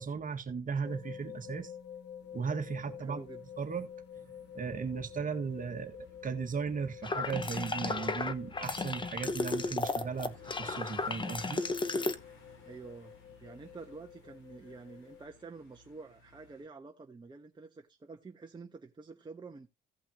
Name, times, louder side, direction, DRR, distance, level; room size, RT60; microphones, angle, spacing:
voice 1, 0.0-1.7 2.3-3.2 3.6-3.9 4.5-11.6, right 5 dB, 45° right, 1.6 m, -36 dB
sound 1, 0.8-15.2, left 8 dB, 60° left, 1.4 m, -50 dB
sound 2, 2.2-16.6, left 4 dB, 85° left, 4.6 m, -58 dB
voice 2, 3.0-3.4 12.7-19.7, right 4 dB, 25° right, 1.1 m, -49 dB
sound 3, 7.0-12.1, left 3 dB, 25° left, 1.0 m, -34 dB
16.5 x 5.6 x 2.9 m
cardioid pair, 90°, 20 cm